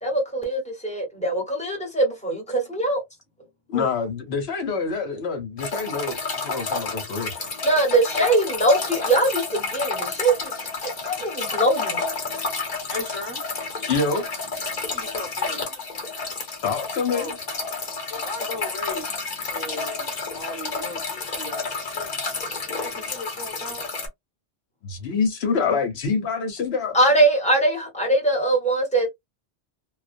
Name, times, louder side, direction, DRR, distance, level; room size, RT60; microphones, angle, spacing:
voice 1, 0.0-3.0 7.6-10.5 10.8-12.0 26.9-29.1, right 2 dB, 5° left, 0.9 m, -22 dB
voice 2, 3.7-6.2 6.4-7.3 13.9-14.3 16.6-17.3 24.8-27.0, left 5 dB, 70° left, 0.9 m, -26 dB
sound 1, 5.6-24.1, left 4 dB, 45° left, 0.9 m, -30 dB
voice 3, 12.9-13.4 14.9-16.1 17.1-17.3 18.1-19.2 19.5-20.1 20.3-22.1 22.7-23.9, left 2 dB, 25° right, 0.9 m, -36 dB
2.3 x 2.1 x 2.4 m
omnidirectional pair, 1.1 m